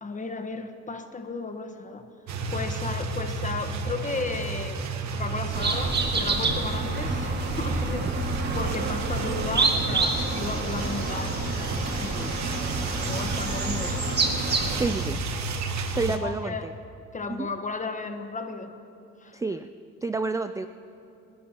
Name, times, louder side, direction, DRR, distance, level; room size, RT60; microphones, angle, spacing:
voice 1, 0.0-2.1 2.5-4.8 5.1-8.1 8.6-11.4 11.9-12.4 13.1-14.0 16.1-16.7 17.1-18.8 19.2-19.4, left 3 dB, 25° left, 7 dB, 1.2 m, -34 dB
sound 1, 2.3-16.2, right 3 dB, 65° right, 1.2 m, -31 dB
sound 2, 5.5-14.9, right 3 dB, 35° right, 1.7 m, -29 dB
sound 3, 10.0-15.1, left 4 dB, 45° left, 2.8 m, -44 dB
voice 2, 14.7-15.2 16.0-16.7 17.3-17.5 19.3-19.7 20.0-20.7, right 3 dB, 10° right, 10 dB, 0.3 m, -29 dB
29.0 x 11.0 x 2.9 m, 2.7 s
cardioid pair, 90°, 30 cm